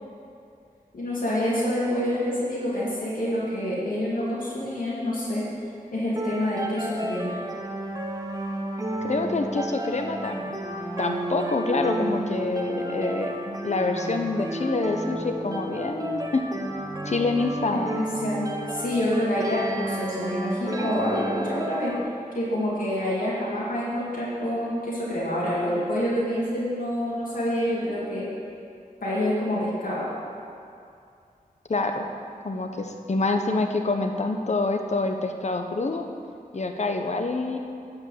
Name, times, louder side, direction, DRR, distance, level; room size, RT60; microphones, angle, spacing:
voice 1, 0.9-5.5 5.9-7.4 17.7-21.9 22.3-28.3 29.0-30.1, left 1 dB, 70° left, -8 dB, 2.4 m, -27 dB
sound 1, 6.2-22.0, right 1 dB, 25° right, 0.9 m, -31 dB
voice 2, 9.0-10.5 11.0-13.3 13.6-16.4 17.0-17.9 31.7-32.0 32.4-36.1 36.5-37.6, left 3 dB, 50° left, 4 dB, 0.9 m, -26 dB
12.0 x 5.4 x 7.3 m, 2.5 s
wide cardioid pair, 70°, 15 cm